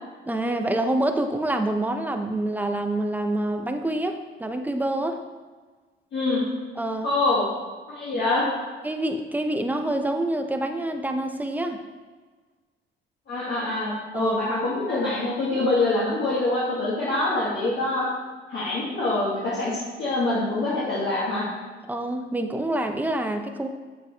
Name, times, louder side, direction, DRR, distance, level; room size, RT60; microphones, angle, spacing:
voice 1, 0.3-5.2 6.8-7.1 8.8-11.8 14.1-14.4 21.9-23.7, right 1 dB, 10° right, 5 dB, 0.7 m, -26 dB
voice 2, 6.1-6.5 7.0-7.5 7.9-8.5 13.3-18.1 18.5-21.5, left 2 dB, 65° left, -9 dB, 2.2 m, -25 dB
8.4 x 6.8 x 3.3 m, 1.4 s
cardioid pair, 90°, 20 cm